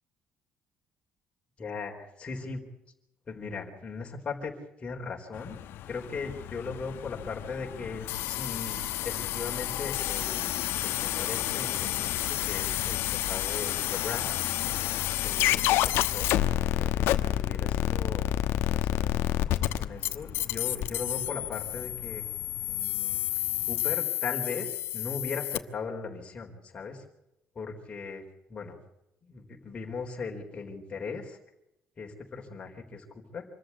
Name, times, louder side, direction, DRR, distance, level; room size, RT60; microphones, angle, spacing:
voice 1, 1.6-2.6 3.3-4.5 4.8-10.6 10.8-13.0 13.3-14.3 15.2-16.3 16.8-22.2 22.7-23.2 23.7-27.0 27.6-28.2 28.5-28.8 29.3-31.4 32.0-33.5, left 4 dB, 25° left, 1 dB, 4.0 m, -38 dB
Car passing by / Engine, 5.3-24.0, left 11 dB, 65° left, 1.3 m, -40 dB
sound 1, 8.1-25.6, left 13 dB, 85° left, 1.2 m, -29 dB
26.5 x 14.5 x 8.5 m, 0.85 s
cardioid pair, 165°, 4 cm